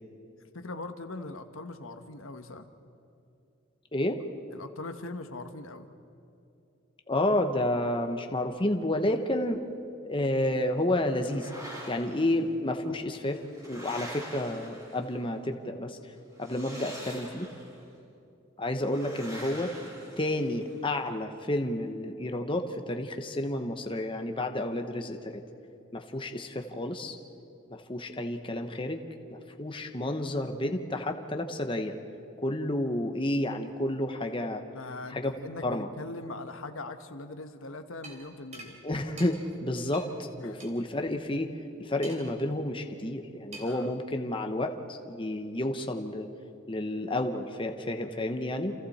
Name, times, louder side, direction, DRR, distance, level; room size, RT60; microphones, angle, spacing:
voice 1, 0.5-2.7 4.5-5.9 34.7-38.8 40.4-40.6 43.6-43.9, left 2 dB, 75° left, 7 dB, 1.2 m, -41 dB
voice 2, 7.1-9.6 10.0-13.4 13.7-16.1 16.4-17.5 18.6-19.7 20.2-25.4 25.9-27.2 27.7-29.0 29.3-32.0 32.4-34.6 35.1-35.3 35.6-35.9 38.8-41.5 41.8-46.3 46.7-48.7, left 1 dB, 25° left, 5 dB, 1.1 m, -30 dB
sound 1, 11.1-12.3 13.1-15.3 16.4-17.8 18.8-20.7, equal, 15° right, 5.8 m, -45 dB
sound 2, 38.0-38.2 38.5-38.7 39.2-39.3 39.9-40.1 40.6-40.7 42.0-42.4 43.5-43.8, right 2 dB, 35° right, 3.5 m, -44 dB
29.5 x 28.0 x 4.3 m, 2.7 s
head